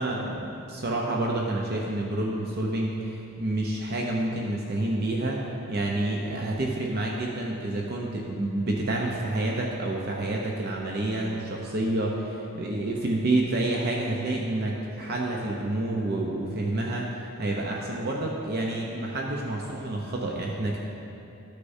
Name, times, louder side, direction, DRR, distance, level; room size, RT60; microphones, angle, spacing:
voice 1, 0.0-5.4 5.7-17.1 17.4-20.8, right 2 dB, 45° right, -2 dB, 0.7 m, -28 dB
13.0 x 6.5 x 2.7 m, 2.8 s
head